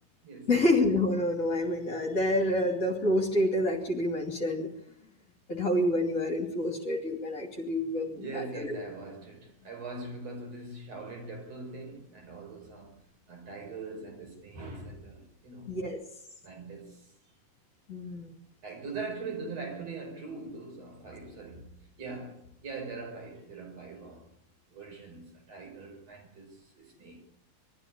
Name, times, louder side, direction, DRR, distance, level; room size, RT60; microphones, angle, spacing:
voice 1, 0.5-4.7 5.5-8.7 15.7-16.0 17.9-18.3, left 1 dB, 25° left, 3.0 m, -28 dB
voice 2, 8.1-12.9 13.3-15.7 16.4-17.1 18.6-24.3 24.7-27.2, right 3 dB, 55° right, 6.2 m, -42 dB
22.5 x 14.5 x 9.8 m
omnidirectional pair, 3.5 m